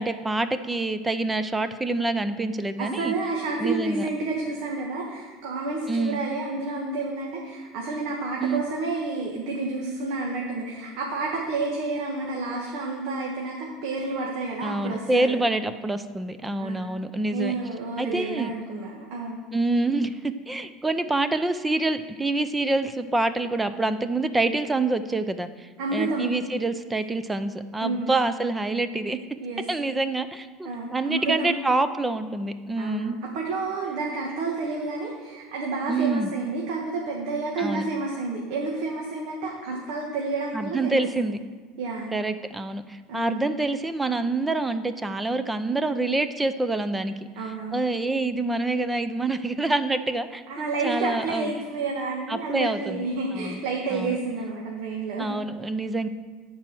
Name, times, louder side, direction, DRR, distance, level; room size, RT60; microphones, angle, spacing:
voice 1, 0.0-3.1 3.6-4.1 5.9-6.2 8.4-8.6 14.6-17.6 18.0-18.5 19.5-29.2 29.7-33.2 35.9-36.3 37.6-37.9 40.5-41.4 42.1-47.1 47.7-51.5 52.3-53.1 53.3-53.6 53.9-54.2 55.2-56.1, right 2 dB, 10° right, 11 dB, 0.6 m, -26 dB
voice 2, 2.8-15.4 16.6-16.8 17.3-19.5 25.8-26.3 27.8-28.1 29.4-29.7 30.6-31.6 32.8-41.2 41.8-42.1 43.1-43.4 47.3-47.9 50.5-55.3, right 3 dB, 70° right, -1 dB, 1.6 m, -30 dB
10.5 x 4.8 x 7.7 m, 1.4 s
supercardioid pair, 115°, 0 cm